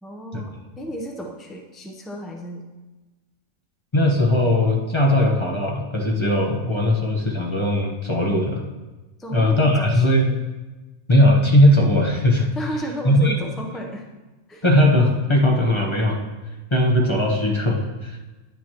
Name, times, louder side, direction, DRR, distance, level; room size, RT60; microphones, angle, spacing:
voice 1, 0.0-2.6 9.2-10.4 12.5-14.1 14.5-14.6, equal, ahead, 0 dB, 0.6 m, -33 dB
voice 2, 3.9-8.6 9.3-10.3 11.1-12.5 13.0-13.3 14.6-16.2 16.7-18.2, left 1 dB, 25° left, 0 dB, 0.9 m, -18 dB
10.5 x 9.2 x 3.0 m, 1.2 s
omnidirectional pair, 1.4 m